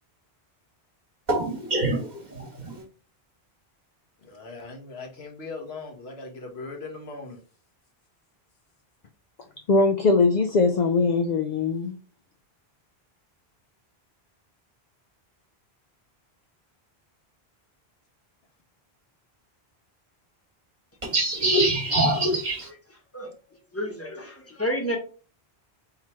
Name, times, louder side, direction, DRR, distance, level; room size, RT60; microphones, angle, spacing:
voice 1, 1.3-2.8 21.0-22.7, right 1 dB, 45° right, 1.4 m, -25 dB
voice 2, 4.2-7.4, left 3 dB, 75° left, 1.4 m, -39 dB
voice 3, 9.7-12.0, left 3 dB, 55° left, 0.5 m, -21 dB
voice 4, 23.7-25.0, equal, 15° left, 1.0 m, -30 dB
3.9 x 2.9 x 4.4 m
omnidirectional pair, 1.1 m